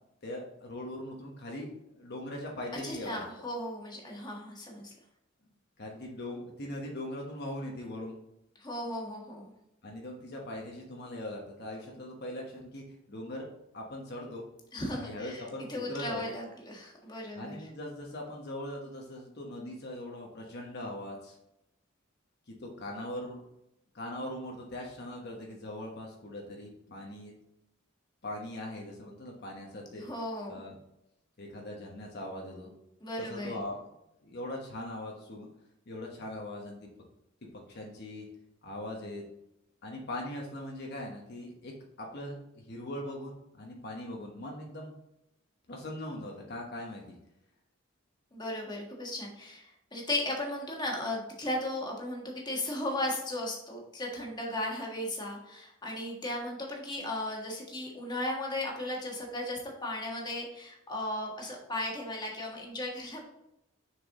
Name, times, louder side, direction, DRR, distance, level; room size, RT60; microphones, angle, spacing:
voice 1, 0.2-3.2 5.8-8.2 9.8-13.5 13.7-14.4 14.9-16.3 17.3-21.4 22.5-23.4 23.9-27.3 28.2-30.0 30.5-30.8 31.4-32.7 33.2-33.9 34.2-35.5 35.9-36.9 37.7-38.3 38.6-39.2 39.8-41.7 42.0-44.9 45.7-47.1, left 1 dB, 55° left, 0 dB, 1.1 m, -40 dB
voice 2, 2.8-4.9 8.6-9.5 14.7-15.4 15.7-17.6 30.0-30.6 33.0-33.6 48.3-63.2, left 1 dB, 20° left, -1 dB, 1.5 m, -36 dB
6.4 x 4.7 x 3.7 m, 0.83 s
head